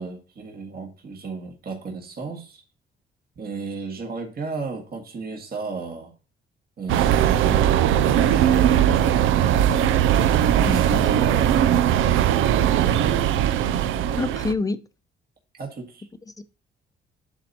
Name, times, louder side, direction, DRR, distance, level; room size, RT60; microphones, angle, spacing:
voice 1, 0.0-2.6 3.4-6.1 6.8-9.6 10.5-13.0 15.5-16.1, right 4 dB, 50° right, 2.0 m, -34 dB
sound 1, 6.9-14.5, right 10 dB, 85° right, 0.5 m, -19 dB
voice 2, 10.6-11.1 14.2-14.8 16.4-16.5, left 3 dB, 15° left, 0.7 m, -27 dB
11.0 x 4.1 x 2.8 m
cardioid pair, 90°, 20 cm